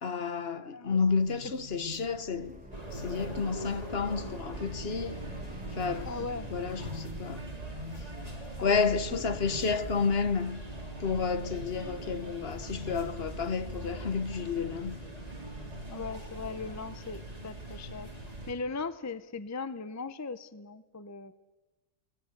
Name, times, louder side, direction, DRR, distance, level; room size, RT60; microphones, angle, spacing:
voice 1, 0.0-2.6 2.9-5.2 5.7-6.1 6.5-7.4 8.6-10.6 11.0-15.0, left 5 dB, 55° left, 1.3 m, -31 dB
voice 2, 0.6-1.0 6.1-6.5 8.6-9.7 15.9-18.1 18.5-21.3, left 4 dB, 20° left, 0.6 m, -39 dB
sound 1, 0.9-13.8, left 1 dB, 80° left, 6.7 m, -49 dB
sound 2, 2.1-8.4, equal, 5° right, 1.3 m, -49 dB
sound 3, 2.7-18.5, right 1 dB, 30° right, 4.2 m, -41 dB
25.0 x 18.0 x 8.1 m
omnidirectional pair, 1.3 m